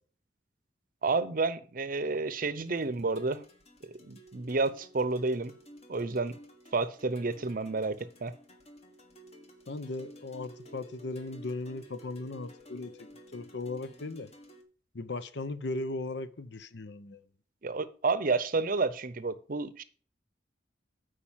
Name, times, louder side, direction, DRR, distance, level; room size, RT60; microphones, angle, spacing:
voice 1, 1.0-3.4 3.8-5.5 5.9-6.4 6.7-8.3 17.6-19.8, right 3 dB, 50° right, 0.7 m, -30 dB
sound 1, 2.7-14.6, equal, 35° left, 1.5 m, -53 dB
voice 2, 9.7-14.3 14.9-17.2, left 2 dB, 65° left, 0.8 m, -37 dB
8.8 x 5.0 x 7.3 m
head